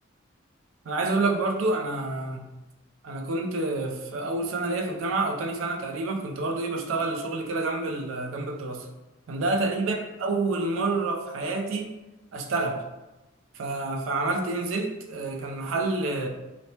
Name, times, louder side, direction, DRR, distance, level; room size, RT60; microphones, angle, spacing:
voice 1, 0.9-2.5 3.0-8.9 9.3-11.9 12.3-12.8 13.5-16.3, right 2 dB, 75° right, 2 dB, 0.4 m, -28 dB
3.0 x 2.0 x 2.8 m, 1.0 s
head